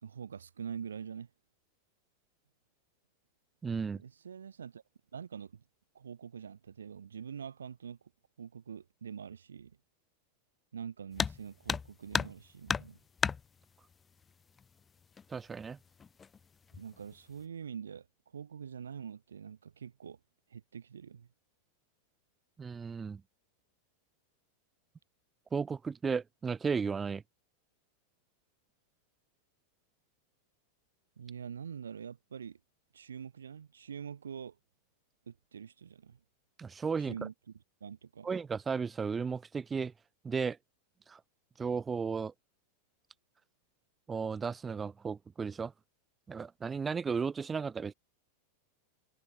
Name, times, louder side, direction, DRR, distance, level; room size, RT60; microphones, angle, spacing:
voice 1, 0.0-1.3 3.9-4.8 5.1-5.6 5.9-8.0 8.4-9.8 10.7-13.0 16.7-18.1 18.3-20.2 20.5-21.3 31.2-32.6 32.9-34.6 35.3-36.2 37.1-37.3 37.8-38.3, right 7 dB, 70° right, 4.6 m, -44 dB
voice 2, 3.6-4.0 15.3-15.8 22.6-23.2 25.5-27.2 36.6-37.1 38.2-39.9 40.2-40.6 41.1-41.2 41.6-42.3 44.1-45.7 46.3-47.9, right 5 dB, 15° right, 3.8 m, -34 dB
sound 1, 11.1-11.4 11.7-12.4 12.7-13.4 14.6-14.7 15.2-15.3 16.0-16.4 16.7-17.1, left 6 dB, 15° left, 1.7 m, -32 dB
figure-of-eight pair, 90°, 0 cm